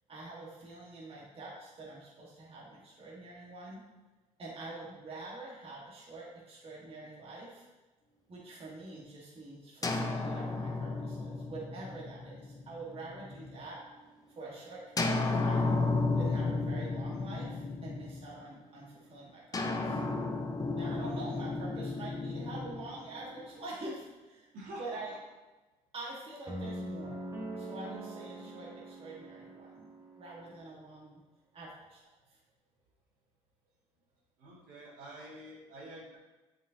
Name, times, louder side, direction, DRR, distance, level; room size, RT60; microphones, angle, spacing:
voice 1, 0.1-3.8 4.4-7.7 8.3-13.8 14.3-15.7 16.2-20.0 20.7-24.5 24.8-25.1 25.9-27.3 27.6-29.9 30.2-31.2 31.5-32.0 32.3-32.4, right 2 dB, 40° right, -5 dB, 1.7 m, -46 dB
sound 1, 9.8-13.6 15.0-18.5 19.5-23.7, left 3 dB, 25° left, 0.7 m, -33 dB
sound 2, 26.5-30.6, right 1 dB, 25° right, 1.5 m, -43 dB
voice 2, 34.4-36.2, right 1 dB, 70° right, -5 dB, 2.1 m, -47 dB
7.3 x 5.0 x 2.8 m, 1.1 s
supercardioid pair, 70°, 15 cm